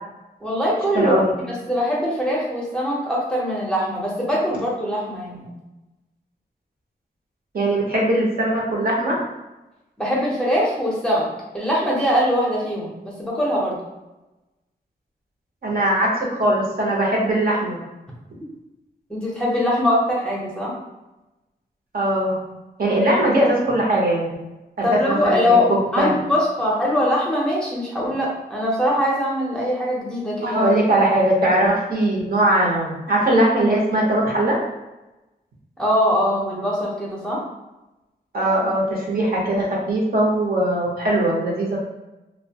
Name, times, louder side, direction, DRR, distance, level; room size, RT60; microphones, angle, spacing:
voice 1, 0.4-1.1 1.5-5.5 10.0-11.3 11.5-13.8 19.1-20.8 24.8-30.7 35.8-37.4, left 1 dB, 5° left, -5 dB, 0.6 m, -22 dB
voice 2, 0.9-1.3 7.5-9.2 15.6-17.8 21.9-22.3 22.8-24.3 24.8-26.1 30.4-34.6 38.3-41.8, right 1 dB, 60° right, -3 dB, 0.8 m, -20 dB
2.7 x 2.2 x 2.8 m, 1.0 s
wide cardioid pair, 125°, 17 cm